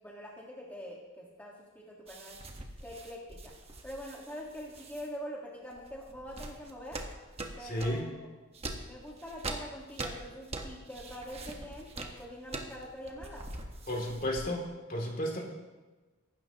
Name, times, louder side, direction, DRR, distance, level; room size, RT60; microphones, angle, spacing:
voice 1, 0.0-2.4 2.8-3.5 3.8-7.0 7.6-8.1 8.8-13.4 15.4-15.5, equal, 10° left, -4 dB, 1.6 m, -44 dB
sound 1, 2.1-5.1 5.7-8.1 8.5-14.7, right 2 dB, 30° right, 1.3 m, -43 dB
voice 2, 7.6-8.0 13.9-15.5, equal, 45° left, 0 dB, 2.7 m, -33 dB
24.0 x 12.5 x 3.0 m, 1.2 s
head